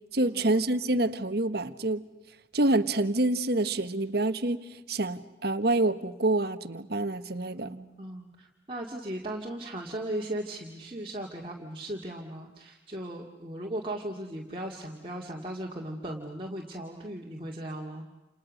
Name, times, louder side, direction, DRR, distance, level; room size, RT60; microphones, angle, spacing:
voice 1, 0.1-2.0 2.5-7.8, right 2 dB, 55° right, 11 dB, 1.4 m, -27 dB
voice 2, 7.6-18.0, right 1 dB, 30° right, -2 dB, 2.4 m, -37 dB
29.5 x 29.0 x 6.5 m, 1.1 s
head